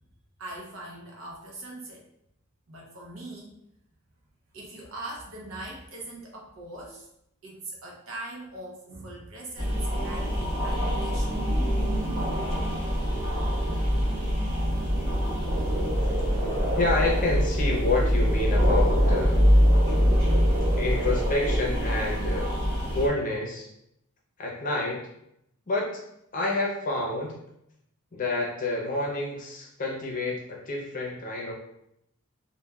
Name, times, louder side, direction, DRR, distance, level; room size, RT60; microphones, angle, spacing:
voice 1, 0.4-2.1 2.7-3.5 4.5-7.1 7.4-11.4, right 2 dB, 65° right, -2 dB, 0.7 m, -41 dB
sound 1, 9.6-23.1, equal, 30° right, 1.5 m, -24 dB
voice 2, 16.8-19.5 20.8-22.6 22.9-23.7 24.4-25.1 25.7-26.0 26.3-27.4 28.1-31.5, left 2 dB, 40° left, -1 dB, 0.6 m, -28 dB
3.1 x 2.2 x 2.2 m, 0.78 s
head